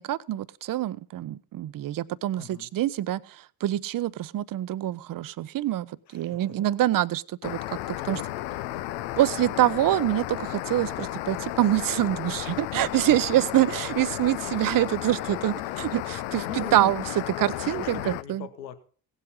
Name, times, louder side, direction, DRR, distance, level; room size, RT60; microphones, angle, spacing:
voice 1, 0.0-7.6 8.1-8.2 9.2-18.4, right 14 dB, 40° right, 17 dB, 0.7 m, -25 dB
voice 2, 2.4-2.7 6.1-6.6 8.0-9.2 12.5-12.7 16.4-16.8 17.3-18.8, left 9 dB, 90° left, 11 dB, 1.1 m, -42 dB
sound 1, 7.4-18.2, left 15 dB, 70° left, 0.8 m, -33 dB
17.0 x 8.1 x 5.5 m, 0.41 s
hypercardioid pair, 55°, 50 cm